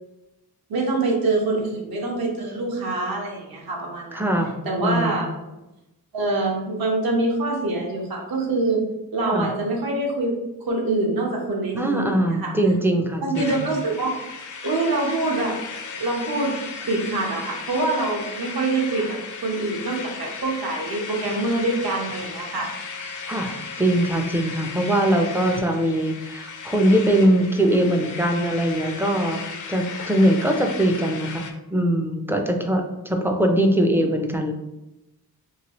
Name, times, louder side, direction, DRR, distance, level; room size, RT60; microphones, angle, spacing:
voice 1, 0.7-4.2 4.6-5.3 6.1-8.8 9.1-10.4 10.6-12.5 13.2-14.2 14.6-15.6 16.0-16.5 16.9-22.7, right 2 dB, 70° right, -1 dB, 1.1 m, -25 dB
voice 2, 4.1-4.5 4.8-5.2 9.2-9.5 11.7-13.7 23.3-34.5, right 1 dB, 5° right, 3 dB, 0.4 m, -22 dB
sound 1, 13.3-31.5, left 5 dB, 55° left, 0.5 m, -36 dB
3.1 x 3.0 x 2.9 m, 0.94 s
wide cardioid pair, 110°, 37 cm